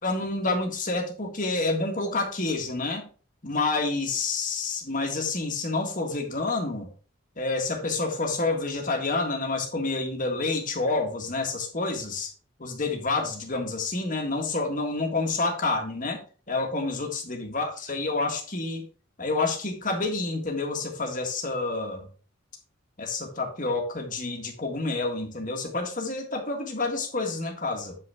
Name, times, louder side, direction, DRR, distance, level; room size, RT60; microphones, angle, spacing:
voice 1, 0.0-3.1 3.4-6.9 7.4-12.3 12.6-16.2 16.5-18.8 19.2-22.0 23.0-28.0, left 3 dB, 40° left, 2 dB, 1.6 m, -28 dB
7.6 x 5.4 x 3.6 m, 0.37 s
head